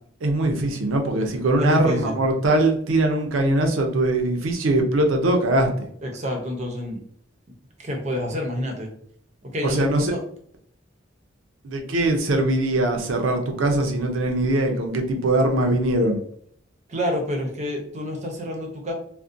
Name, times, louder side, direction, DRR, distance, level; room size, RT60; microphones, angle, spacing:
voice 1, 0.2-5.9 9.6-10.1 11.6-16.2, right 1 dB, 90° right, 4 dB, 0.5 m, -21 dB
voice 2, 1.6-2.2 6.0-7.0 7.8-8.9 9.4-10.2 16.9-18.9, left 1 dB, 35° right, 2 dB, 0.5 m, -28 dB
2.4 x 2.1 x 2.5 m, 0.63 s
head